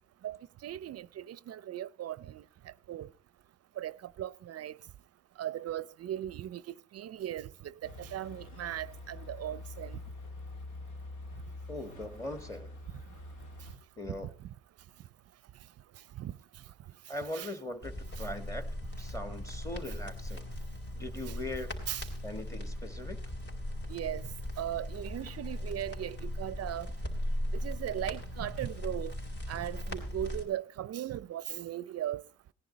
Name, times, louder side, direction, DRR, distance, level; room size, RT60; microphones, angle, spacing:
voice 1, 0.6-2.4 2.9-3.1 3.8-4.8 5.4-10.0 14.1-14.2 16.2-16.3 17.3-17.5 18.2-18.3 21.3-21.4 21.9-22.1 23.9-24.3 24.6-26.9 27.5-29.1 29.5-32.2, right 12 dB, 55° right, 0.5 m, -38 dB
sound 1, 7.8-13.8, left 2 dB, 75° left, 2.0 m, -45 dB
voice 2, 11.7-12.7 14.0-14.3 17.1-18.6 19.0-20.5 20.9-21.7 22.2-23.2, left 1 dB, 10° left, 1.7 m, -40 dB
sound 2, 17.8-30.4, left 1 dB, 35° left, 3.7 m, -38 dB
18.0 x 10.5 x 4.0 m
cardioid pair, 90°, 30 cm